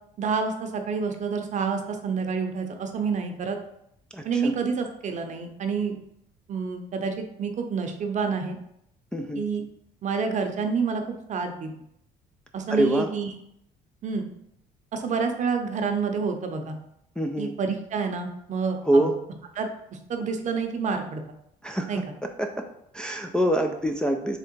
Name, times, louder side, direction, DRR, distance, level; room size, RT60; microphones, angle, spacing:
voice 1, 0.2-3.6 4.2-6.0 6.5-8.6 9.3-9.6 10.0-11.7 12.5-13.3 14.0-14.3 14.9-16.8 17.4-19.1 19.6-19.7 20.1-21.2 21.9-22.0, right 5 dB, 45° right, 5 dB, 0.7 m, -28 dB
voice 2, 4.1-4.5 9.1-9.4 12.7-13.1 17.2-17.5 18.8-19.2 21.6-22.7 22.9-24.4, right 1 dB, 5° left, 2 dB, 0.4 m, -25 dB
3.7 x 3.3 x 4.4 m, 0.76 s
cardioid pair, 110°, 17 cm